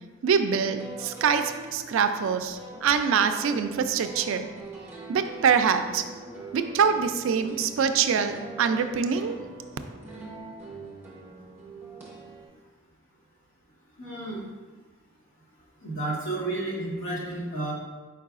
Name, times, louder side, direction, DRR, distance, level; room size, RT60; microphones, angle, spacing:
voice 1, 0.2-4.5 5.1-6.0 6.5-9.4, right 6 dB, 70° right, 9 dB, 0.3 m, -24 dB
sound 1, 0.6-12.5, right 3 dB, 10° right, 0.7 m, -43 dB
voice 2, 14.0-14.4 15.8-17.7, right 2 dB, 70° left, -6 dB, 1.4 m, -31 dB
4.7 x 4.6 x 2.4 m, 1.3 s
head